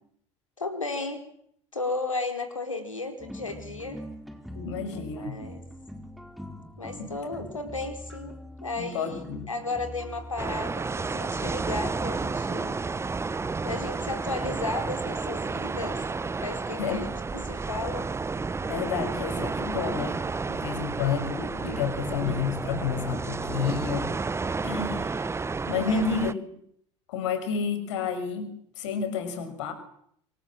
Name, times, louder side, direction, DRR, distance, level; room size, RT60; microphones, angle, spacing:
voice 1, 0.6-1.3 1.7-4.0 4.9-5.6 6.8-12.8 13.6-16.0 16.4-17.1 17.3-18.1 25.9-26.0, left 3 dB, 85° left, 8 dB, 4.4 m, -34 dB
sound 1, 3.2-12.4, equal, ahead, 4.8 m, -43 dB
voice 2, 4.6-5.4 7.0-7.1 8.8-9.5 16.8-17.0 18.7-24.1 24.6-25.1 25.7-26.4 27.1-29.7, left 6 dB, 65° left, 10 dB, 6.3 m, -30 dB
sound 2, 10.4-26.3, right 4 dB, 15° right, 1.1 m, -31 dB
27.5 x 26.5 x 7.8 m, 0.69 s
figure-of-eight pair, 70°, 16 cm